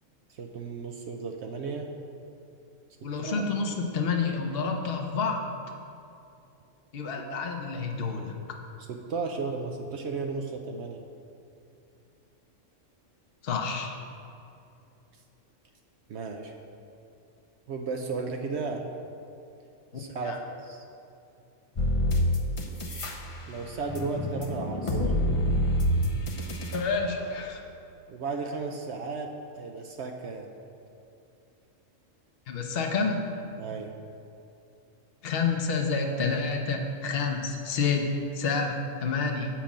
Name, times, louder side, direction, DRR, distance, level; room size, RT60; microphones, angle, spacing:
voice 1, 0.3-1.9 3.0-3.4 8.8-11.0 16.1-16.5 17.7-18.9 19.9-20.8 23.5-25.0 28.1-30.5 33.6-33.9, right 4 dB, 65° right, 3 dB, 0.8 m, -34 dB
voice 2, 3.0-5.5 6.9-8.4 13.4-14.0 19.9-20.4 26.7-27.6 32.5-33.3 35.2-38.1 38.3-39.5, left 4 dB, 50° left, 2 dB, 1.0 m, -29 dB
sound 1, 21.8-23.1 23.5-26.8, equal, 30° left, 0.7 m, -27 dB
7.4 x 5.1 x 7.2 m, 2.7 s
omnidirectional pair, 1.4 m